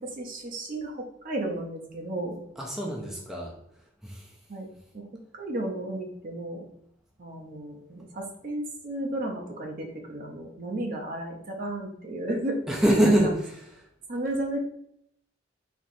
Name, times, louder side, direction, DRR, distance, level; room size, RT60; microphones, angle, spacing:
voice 1, 0.0-2.4 4.5-4.7 4.9-5.1 5.3-6.6 7.2-12.6 13.0-13.1 14.1-14.6, right 1 dB, 45° right, 1 dB, 0.6 m, -33 dB
voice 2, 2.6-3.6 4.0-4.4 12.7-13.7, right 1 dB, ahead, -3 dB, 0.5 m, -25 dB
4.3 x 2.9 x 2.6 m, 0.73 s
head